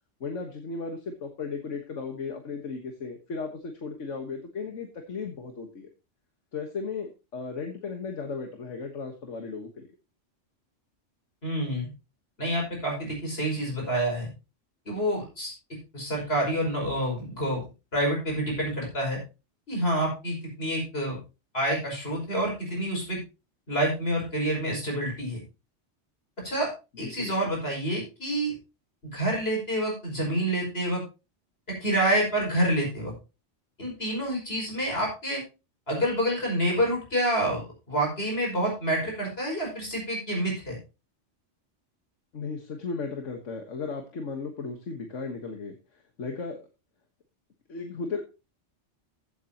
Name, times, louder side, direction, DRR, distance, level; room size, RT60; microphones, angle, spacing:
voice 1, 0.2-5.9 6.5-9.9 27.0-27.3 42.3-46.6 47.7-48.2, left 4 dB, 85° left, 4 dB, 1.8 m, -35 dB
voice 2, 11.4-11.9 12.4-14.3 14.9-15.5 15.9-17.6 17.9-19.2 19.7-21.2 21.5-23.2 23.7-25.4 26.4-26.7 27.0-28.6 29.1-31.0 31.7-33.1 33.8-35.4 35.9-40.8, right 1 dB, 55° left, -1 dB, 5.7 m, -28 dB
15.0 x 8.4 x 2.9 m, 0.29 s
omnidirectional pair, 1.2 m